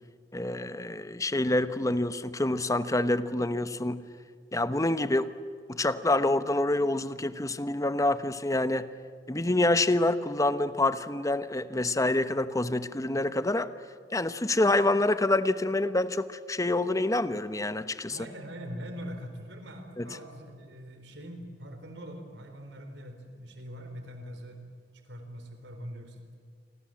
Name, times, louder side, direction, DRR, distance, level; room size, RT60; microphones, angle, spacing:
voice 1, 0.3-4.0 4.5-5.3 5.7-8.9 9.3-13.7 14.1-18.2 20.0-20.1, left 2 dB, 20° left, 12 dB, 1.0 m, -27 dB
voice 2, 18.1-24.6 25.0-26.4, equal, 80° right, 6 dB, 4.1 m, -42 dB
29.5 x 24.5 x 7.8 m, 2.2 s
head